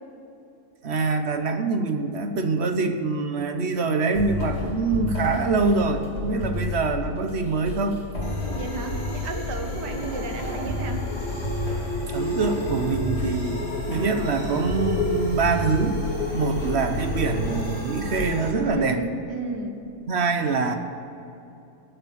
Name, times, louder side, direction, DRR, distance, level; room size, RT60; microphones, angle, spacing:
voice 1, 0.8-8.1 12.1-13.6 13.9-16.0 16.3-19.0 20.1-20.8, right 4 dB, 45° right, 7 dB, 1.1 m, -24 dB
sound 1, 4.1-18.7, left 3 dB, 60° left, 3.9 m, -32 dB
sound 2, 8.2-18.5, left 1 dB, 25° left, 2.3 m, -31 dB
voice 2, 8.4-11.0 18.7-19.8, right 3 dB, 85° right, 5 dB, 2.0 m, -33 dB
18.5 x 7.4 x 8.0 m, 2.8 s
omnidirectional pair, 1.8 m